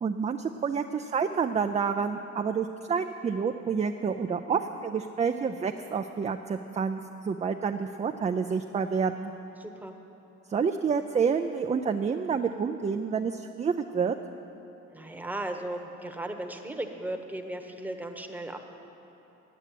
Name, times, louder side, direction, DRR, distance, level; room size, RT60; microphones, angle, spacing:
voice 1, 0.0-9.3 10.5-14.2, right 6 dB, 25° right, 6 dB, 0.3 m, -28 dB
voice 2, 9.6-9.9 14.9-18.6, right 1 dB, 5° right, 4 dB, 1.0 m, -36 dB
9.0 x 8.2 x 9.2 m, 3.0 s
cardioid pair, 90°, 30 cm